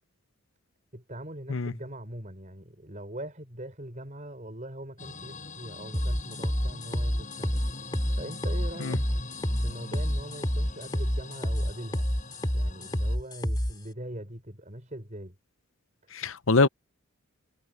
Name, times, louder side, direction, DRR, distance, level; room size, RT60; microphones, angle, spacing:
voice 1, 0.9-9.0 9.6-12.1 12.5-15.4, right 1 dB, 35° right, 5.6 m, -42 dB
sound 1, 5.0-13.2, left 3 dB, 35° left, 7.1 m, -43 dB
sound 2, 5.9-13.7, equal, 20° left, 3.5 m, -28 dB
voice 2, 16.1-16.7, left 3 dB, 65° left, 0.8 m, -24 dB
head